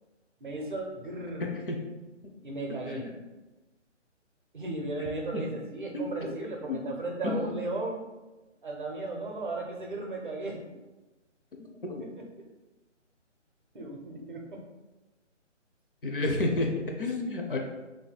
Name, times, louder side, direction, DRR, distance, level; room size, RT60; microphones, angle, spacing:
voice 1, 0.4-1.5 2.4-3.1 4.5-8.0 8.6-10.6 12.0-12.2 13.7-14.6, right 2 dB, 45° right, 1 dB, 0.6 m, -35 dB
voice 2, 1.4-1.8 2.7-3.1 5.0-5.1 5.3-5.4 5.9-6.8 7.2-7.4 11.6-12.1 16.0-17.6, left 2 dB, 45° left, 1 dB, 0.5 m, -32 dB
2.7 x 2.6 x 4.0 m, 1.1 s
figure-of-eight pair, 150°, 37 cm